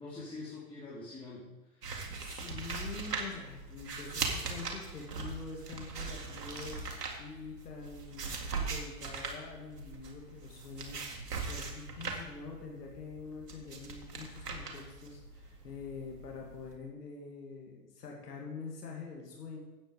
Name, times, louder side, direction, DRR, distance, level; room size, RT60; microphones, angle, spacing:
voice 1, 0.0-2.2, left 3 dB, 10° left, -7 dB, 3.2 m, -46 dB
sound 1, 1.8-16.7, right 4 dB, 85° right, 2.2 m, -40 dB
voice 2, 1.9-11.0 11.4-19.6, left 4 dB, 80° left, 0 dB, 2.5 m, -45 dB
sound 2, 6.4-7.5, right 3 dB, 20° right, 3.4 m, -54 dB
13.0 x 8.9 x 4.9 m, 1.1 s
hypercardioid pair, 100°, 47 cm